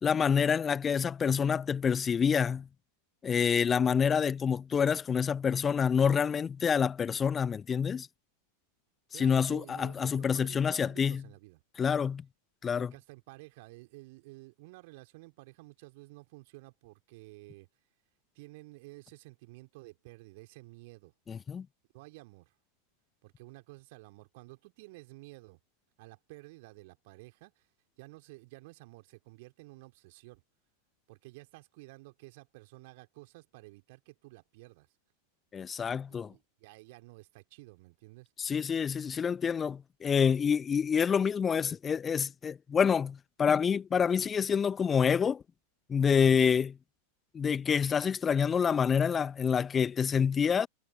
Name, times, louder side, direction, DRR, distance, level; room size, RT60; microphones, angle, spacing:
voice 1, 0.0-2.7 3.2-8.1 9.2-11.2 11.8-12.2 12.6-12.9 21.3-21.7 35.5-36.3 38.4-45.4 45.9-46.8 47.3-50.7, left 7 dB, 20° left, 0.9 m, -27 dB
voice 2, 9.1-11.6 12.8-17.7 18.3-21.1 21.9-22.5 23.2-25.6 26.0-27.7 28.0-30.4 31.1-34.9 36.1-38.3, right 23 dB, 50° right, 3.7 m, -52 dB
figure-of-eight pair, 90°, 0 cm